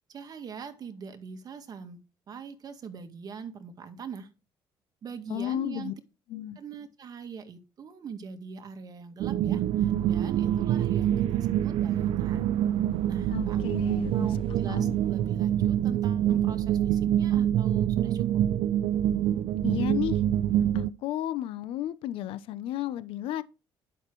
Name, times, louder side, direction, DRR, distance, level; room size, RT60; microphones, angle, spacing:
voice 1, 0.1-2.0 2.3-4.3 5.0-5.9 6.6-12.6 13.1-18.3, right 6 dB, 45° right, 2.0 m, -42 dB
voice 2, 5.3-5.9 6.3-6.6 13.3-15.0 19.6-20.2 20.7-23.4, left 12 dB, 80° left, 0.9 m, -33 dB
sound 1, 9.2-20.9, right 11 dB, 80° right, 0.6 m, -26 dB
11.0 x 6.5 x 4.7 m
cardioid pair, 110°, 9 cm